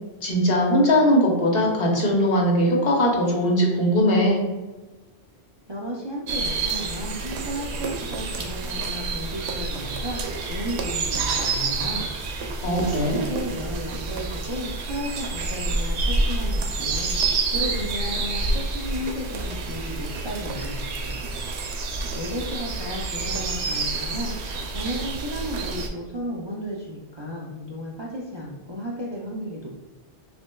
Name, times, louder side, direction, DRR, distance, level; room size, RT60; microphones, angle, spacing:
voice 1, 0.2-4.4 12.6-13.2, equal, 65° left, -2 dB, 1.1 m, -20 dB
voice 2, 5.7-12.1 12.9-17.2 17.5-21.3 22.1-24.3 24.7-29.7, equal, 40° right, -5 dB, 0.4 m, -34 dB
sound 1, 6.3-25.9, right 3 dB, 85° right, 0.9 m, -28 dB
6.0 x 2.2 x 2.2 m, 1.2 s
omnidirectional pair, 1.1 m